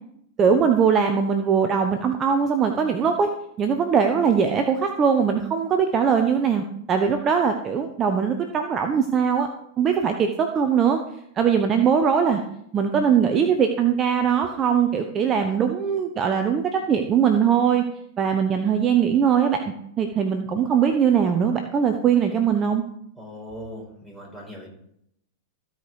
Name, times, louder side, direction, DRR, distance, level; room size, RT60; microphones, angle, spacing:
voice 1, 0.4-3.3 3.6-9.5 9.8-11.0 11.4-12.4 12.7-17.8 18.2-19.6 20.0-22.8, right 7 dB, 30° right, 5 dB, 1.0 m, -21 dB
voice 2, 23.2-24.7, equal, ahead, -4 dB, 4.8 m, -39 dB
15.0 x 5.2 x 4.8 m, 0.74 s
hypercardioid pair, 115°, 0 cm